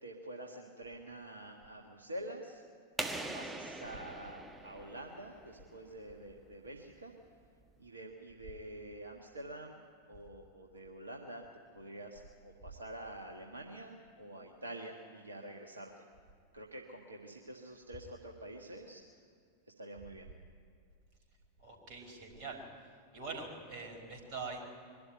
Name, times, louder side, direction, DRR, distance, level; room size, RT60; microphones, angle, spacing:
voice 1, 0.0-2.6 3.3-7.1 7.8-9.8 10.1-11.4 11.7-15.9 16.5-19.0 19.8-20.3, right 1 dB, 75° right, 1 dB, 1.5 m, -47 dB
sound 1, 3.0-5.6, right 2 dB, 10° right, 1.5 m, -42 dB
voice 2, 21.6-22.6 23.1-24.6, right 4 dB, 45° right, 2 dB, 4.8 m, -43 dB
23.0 x 12.0 x 9.8 m, 2.3 s
figure-of-eight pair, 90°, 0 cm